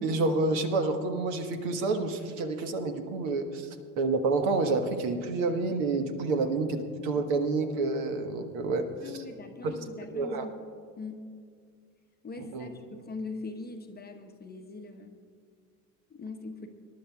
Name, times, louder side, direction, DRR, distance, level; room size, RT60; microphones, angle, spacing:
voice 1, 0.0-3.7 4.0-8.9 9.6-9.8 10.1-10.4 12.5-12.7, right 3 dB, 60° right, 6 dB, 1.4 m, -28 dB
voice 2, 9.0-10.5 11.0-11.3 12.2-15.1 16.1-16.7, left 3 dB, 20° left, 5 dB, 1.0 m, -41 dB
26.0 x 11.5 x 2.4 m, 2.1 s
hypercardioid pair, 75°, 48 cm